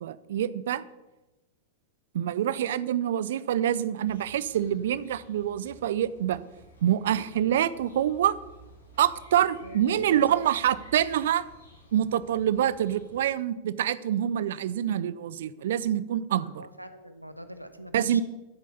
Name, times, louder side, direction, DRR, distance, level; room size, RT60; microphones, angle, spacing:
voice 1, 0.0-0.8 2.1-6.4 6.8-8.4 9.0-11.4 11.9-16.6 17.9-18.2, right 10 dB, 60° right, 18 dB, 0.6 m, -26 dB
sound 1, 4.0-13.2, right 1 dB, 75° left, 3.9 m, -53 dB
voice 2, 9.6-10.2 16.4-18.2, right 1 dB, 90° right, 10 dB, 1.1 m, -43 dB
13.0 x 8.3 x 7.0 m, 1.1 s
figure-of-eight pair, 90°, 0 cm